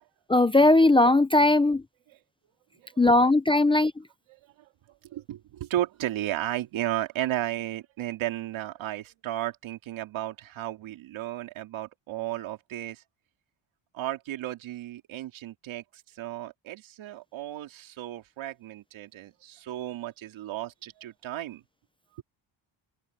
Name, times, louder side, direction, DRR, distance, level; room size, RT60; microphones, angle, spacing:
voice 1, 0.3-1.8 3.0-3.9, left 2 dB, 10° left, 0.5 m, -19 dB
voice 2, 5.1-13.0 13.9-15.8 16.2-21.6, right 14 dB, 85° right, 2.6 m, -34 dB
open air
cardioid pair, 165°, 46 cm